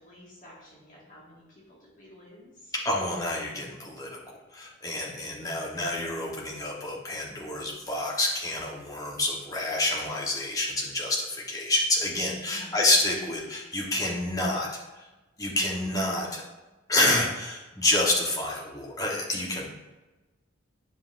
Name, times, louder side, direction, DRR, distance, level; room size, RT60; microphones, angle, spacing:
voice 1, 0.0-2.7 12.5-12.8, left 1 dB, 40° left, -6 dB, 1.8 m, -51 dB
voice 2, 2.7-14.7 14.9-15.1 15.4-16.4 16.9-19.7, left 2 dB, 20° left, -3 dB, 1.2 m, -28 dB
9.5 x 5.7 x 2.6 m, 1.1 s
head